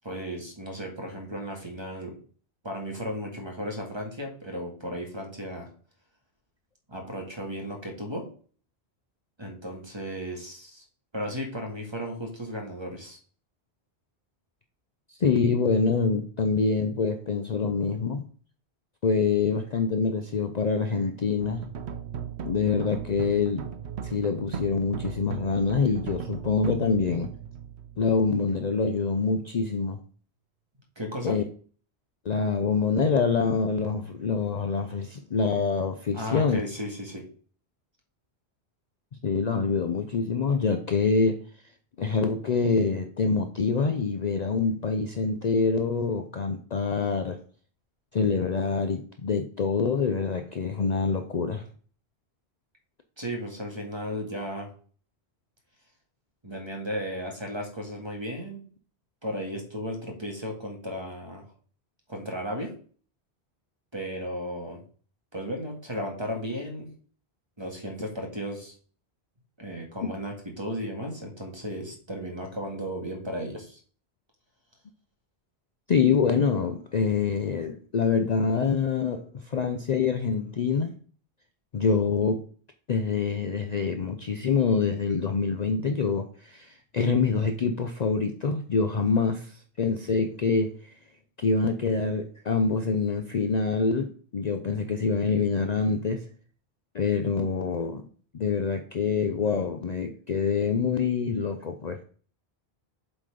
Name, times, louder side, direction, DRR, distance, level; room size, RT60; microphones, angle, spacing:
voice 1, 0.0-2.2 2.6-5.7 6.9-8.3 9.4-10.9 11.1-13.2 31.0-31.4 36.1-37.3 53.2-54.7 56.4-58.6 59.2-61.5 62.1-62.7 63.9-64.8 65.3-66.9 67.6-68.7 69.6-73.8, equal, 25° right, 1.8 m, -35 dB
voice 2, 15.1-18.2 19.0-21.6 22.4-23.7 24.0-27.3 28.0-30.0 31.2-31.4 32.2-36.6 39.2-41.4 42.0-47.4 48.1-51.6 75.9-81.0 81.7-82.4 82.9-90.9 91.4-96.2 96.9-98.0 98.3-102.0, left 5 dB, 50° left, 0.6 m, -25 dB
sound 1, 21.4-28.7, right 8 dB, 80° right, 1.0 m, -37 dB
7.5 x 4.1 x 4.9 m
omnidirectional pair, 1.1 m